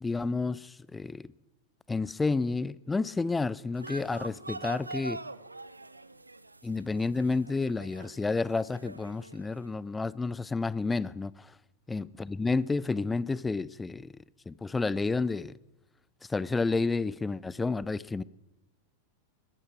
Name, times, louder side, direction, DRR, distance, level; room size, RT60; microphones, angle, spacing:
voice 1, 0.0-1.3 1.9-5.2 6.6-11.5 11.9-14.1 14.5-15.5 16.3-18.2, left 3 dB, 10° left, 0.4 m, -30 dB
sound 1, 3.7-9.7, right 2 dB, 85° right, 0.6 m, -44 dB
20.5 x 15.0 x 4.5 m
figure-of-eight pair, 90°, 0 cm